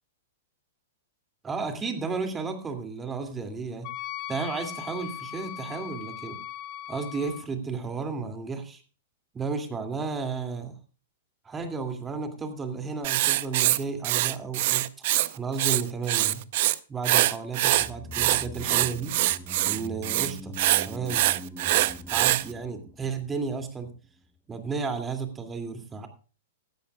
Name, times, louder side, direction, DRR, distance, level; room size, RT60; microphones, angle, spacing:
voice 1, 1.4-3.9 4.3-6.4 6.9-8.8 9.3-10.7 11.4-14.9 15.3-16.5 16.9-19.1 19.7-20.6 20.8-21.3 22.1-23.9 24.5-26.1, right 5 dB, 15° right, 6 dB, 2.6 m, -33 dB
Wind instrument woodwind instrument, 3.8-7.5, left 12 dB, 40° left, 1.2 m, -39 dB
Writing, 13.0-15.3 15.5-16.7 17.0-22.4, right 16 dB, 55° right, 0.7 m, -24 dB
sound 1, 17.6-24.0 24.2-24.3, left 1 dB, 10° left, 1.2 m, -43 dB
17.5 x 13.0 x 2.4 m, 0.35 s
hypercardioid pair, 140°, 0 cm